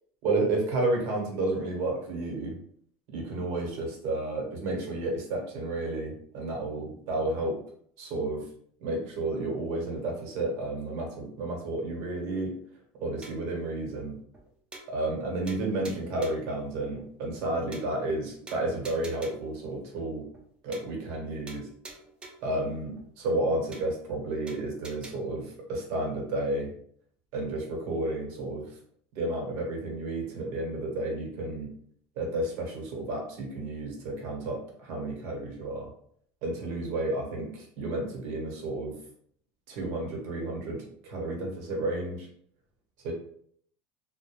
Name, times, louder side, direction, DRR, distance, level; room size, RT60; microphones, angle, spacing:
voice 1, 0.2-2.6 3.1-7.6 8.0-8.5 8.8-12.6 13.0-14.2 14.9-20.3 20.6-21.7 22.4-26.7 27.3-28.8 29.1-31.7 32.2-35.9 36.4-39.0 39.7-42.3 43.0-43.1, right 2 dB, 60° right, 0 dB, 1.0 m, -31 dB
sound 1, 13.2-13.6 14.0-14.1 14.3-14.4 14.7-15.2 15.5-16.5 17.0-17.1 17.3-17.4 17.7-18.2 18.5-19.5 20.0-20.1 20.3-20.5 20.7-21.2 21.5-22.5 23.0-23.1 23.3-23.4 23.7-24.2 24.5-25.1, right 2 dB, 15° right, 0.4 m, -47 dB
2.3 x 2.1 x 3.0 m, 0.63 s
supercardioid pair, 145°, 6 cm